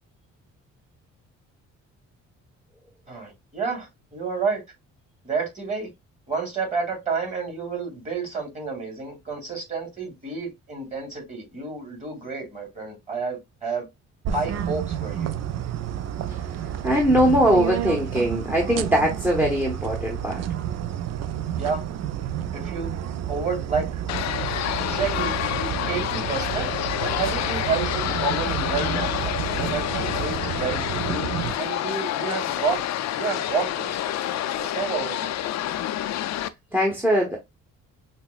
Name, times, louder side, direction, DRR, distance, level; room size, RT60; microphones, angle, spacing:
voice 1, 3.1-4.6 5.2-5.9 6.3-13.9 14.3-15.4 21.6-21.8 22.5-22.9 23.3-24.0 24.8-26.7 27.0-31.3 31.6-32.8 33.1-34.0 34.6-35.5, right 4 dB, 25° right, 2.2 m, -30 dB
sound 1, 14.2-31.5, right 10 dB, 60° right, 0.4 m, -30 dB
voice 2, 16.8-20.4 36.7-37.4, equal, 5° right, 0.9 m, -21 dB
sound 2, 24.1-36.5, left 12 dB, 60° left, 0.4 m, -28 dB
5.7 x 2.1 x 2.3 m
cardioid pair, 90°, 30 cm